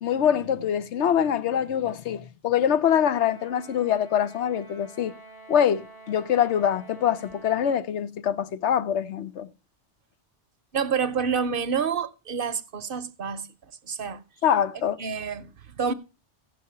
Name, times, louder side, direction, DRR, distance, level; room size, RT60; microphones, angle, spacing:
voice 1, 0.0-5.1 5.5-9.5 14.4-15.0, left 9 dB, 75° left, 1.0 m, -24 dB
Trumpet, 2.8-7.8, right 2 dB, 55° left, 5.8 m, -48 dB
voice 2, 10.7-13.5 13.8-14.2 15.0-15.9, right 6 dB, 55° right, 0.8 m, -28 dB
16.0 x 5.7 x 5.6 m
omnidirectional pair, 1.2 m